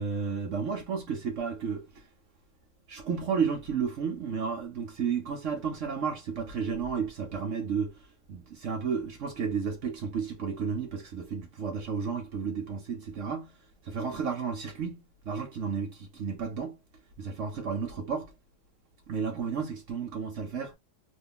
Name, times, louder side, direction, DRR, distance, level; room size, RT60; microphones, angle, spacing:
voice 1, 0.0-2.1 2.9-16.8 17.2-18.3 19.1-20.8, right 6 dB, 60° right, 0.8 m, -32 dB
3.3 x 2.3 x 3.5 m
omnidirectional pair, 2.1 m